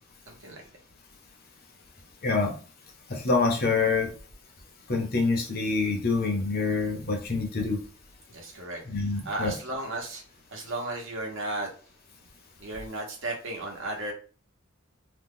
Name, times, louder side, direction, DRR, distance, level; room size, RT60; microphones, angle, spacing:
voice 1, 0.3-0.6 8.3-8.8 9.2-10.2 10.5-11.7 12.6-14.1, right 2 dB, 65° right, 0 dB, 1.1 m, -34 dB
voice 2, 2.2-2.5 3.1-4.1 4.9-7.8 8.8-9.5, left 4 dB, 45° left, 2 dB, 0.9 m, -26 dB
2.9 x 2.3 x 3.6 m, 0.38 s
head